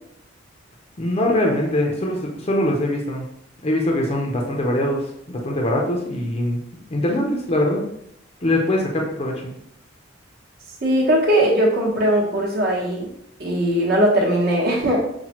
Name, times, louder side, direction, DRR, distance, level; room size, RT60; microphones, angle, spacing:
voice 1, 1.0-3.3 3.6-7.9 8.4-9.5, left 1 dB, 30° left, 0 dB, 0.5 m, -22 dB
voice 2, 10.8-13.1 13.4-15.0, equal, 50° right, -3 dB, 1.0 m, -19 dB
5.6 x 2.1 x 2.9 m, 0.76 s
head